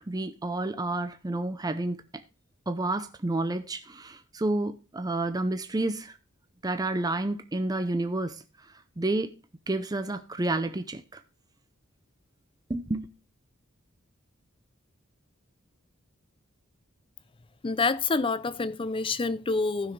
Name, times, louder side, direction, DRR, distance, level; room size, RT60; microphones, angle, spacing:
voice 1, 0.0-2.0 2.7-6.2 6.6-8.4 9.0-9.3 9.7-11.2 12.7-13.1, right 2 dB, 20° right, 0.6 m, -30 dB
voice 2, 17.6-19.9, left 3 dB, 25° left, 0.5 m, -27 dB
15.0 x 6.3 x 3.2 m
head